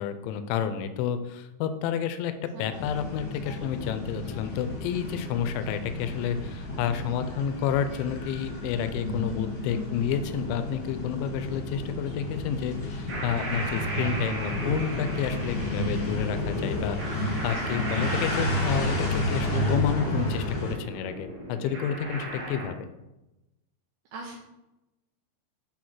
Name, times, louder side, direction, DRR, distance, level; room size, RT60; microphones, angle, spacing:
voice 1, 0.0-22.8, left 8 dB, 85° left, 10 dB, 2.8 m, -30 dB
sound 1, 2.7-20.7, left 1 dB, 60° left, 1.6 m, -31 dB
sound 2, 13.1-22.7, right 2 dB, 60° right, 1.3 m, -37 dB
voice 2, 17.4-17.8 24.1-24.4, right 3 dB, 80° right, -2 dB, 2.2 m, -42 dB
8.5 x 3.8 x 4.6 m, 0.97 s
omnidirectional pair, 5.3 m